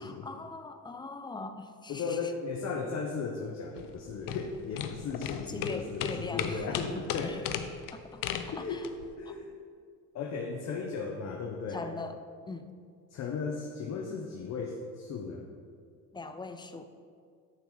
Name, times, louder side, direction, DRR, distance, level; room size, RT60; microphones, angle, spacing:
voice 1, 0.0-2.3 5.5-6.7 6.9-7.5 7.9-8.9 9.3-9.4 11.7-12.2 12.5-12.7 16.1-16.9, left 3 dB, 15° left, 8 dB, 0.4 m, -41 dB
voice 2, 1.9-7.4 8.5-8.9 9.2-9.5 10.1-11.9 13.1-15.4, left 4 dB, 50° left, 1 dB, 0.9 m, -36 dB
sound 1, 3.8-9.1, left 9 dB, 75° left, 0.7 m, -36 dB
10.5 x 6.2 x 3.9 m, 2.1 s
cardioid pair, 125°, 34 cm